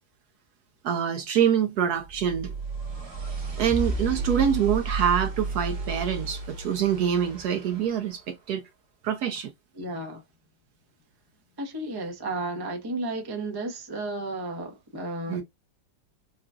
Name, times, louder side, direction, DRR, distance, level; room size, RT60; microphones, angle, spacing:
voice 1, 0.8-2.5 3.6-8.6 9.0-9.5 15.3-15.4, right 8 dB, 70° right, 1.0 m, -25 dB
sound 1, 2.0-8.1, right 3 dB, 40° right, 1.4 m, -32 dB
voice 2, 9.8-10.2 11.6-15.4, right 2 dB, 20° right, 0.6 m, -33 dB
4.8 x 2.3 x 2.5 m
omnidirectional pair, 2.0 m